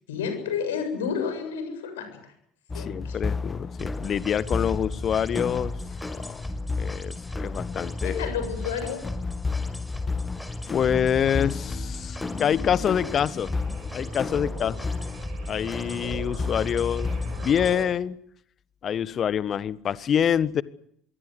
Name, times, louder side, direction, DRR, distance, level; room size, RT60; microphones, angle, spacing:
voice 1, 0.1-2.3 2.7-3.2 8.0-9.0, left 6 dB, 80° left, 7 dB, 7.6 m, -31 dB
voice 2, 2.7-5.7 6.1-6.4 6.8-8.3 10.7-14.8 15.5-17.1 17.4-18.2 18.8-20.6, left 8 dB, 45° left, 18 dB, 1.4 m, -26 dB
sound 1, 2.7-17.7, left 4 dB, 25° left, 1.9 m, -33 dB
sound 2, 3.8-17.8, left 1 dB, 10° left, 5.4 m, -36 dB
sound 3, 12.1-17.9, right 6 dB, 55° right, 6.6 m, -43 dB
26.0 x 23.0 x 8.2 m, 0.67 s
figure-of-eight pair, 55°, 0 cm